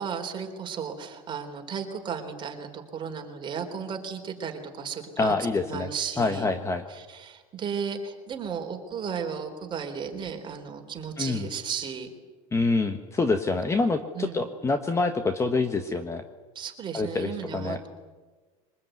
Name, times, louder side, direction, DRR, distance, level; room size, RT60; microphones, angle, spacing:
voice 1, 0.0-6.5 6.9-12.1 14.1-14.5 16.5-17.9, right 6 dB, 25° right, 4 dB, 4.1 m, -34 dB
voice 2, 5.2-5.9 6.2-6.8 11.2-11.5 12.5-16.2 16.9-17.8, left 3 dB, 15° left, 8 dB, 1.4 m, -26 dB
24.0 x 20.5 x 9.4 m, 1.3 s
supercardioid pair, 135°, 17 cm